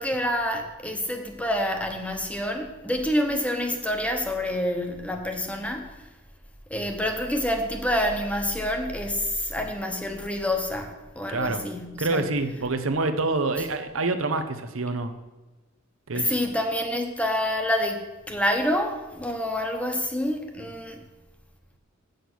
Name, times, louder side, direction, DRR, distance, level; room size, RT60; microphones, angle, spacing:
voice 1, 0.0-6.1 6.7-12.2 16.1-21.1, left 1 dB, 5° left, 0.9 m, -27 dB
voice 2, 11.3-11.6 12.0-15.1 16.1-16.4, right 3 dB, 85° right, 0.8 m, -26 dB
8.4 x 6.6 x 6.1 m
head